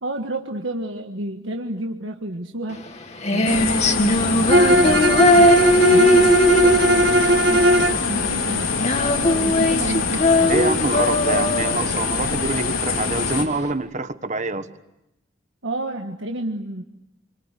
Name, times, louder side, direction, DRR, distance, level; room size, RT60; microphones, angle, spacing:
voice 1, 0.0-2.9 3.3-5.6 5.9-8.8 9.0-10.6 15.6-16.8, right 1 dB, 75° right, 3 dB, 1.6 m, -31 dB
Female singing, 2.7-13.7, left 1 dB, 35° left, 2.1 m, -19 dB
sound 1, 3.5-13.4, left 4 dB, 90° left, 3.8 m, -24 dB
Bowed string instrument, 4.5-8.0, equal, 55° right, 1.6 m, -18 dB
voice 2, 10.5-14.7, right 2 dB, 40° right, 10 dB, 1.3 m, -25 dB
29.0 x 24.5 x 8.3 m, 0.88 s
head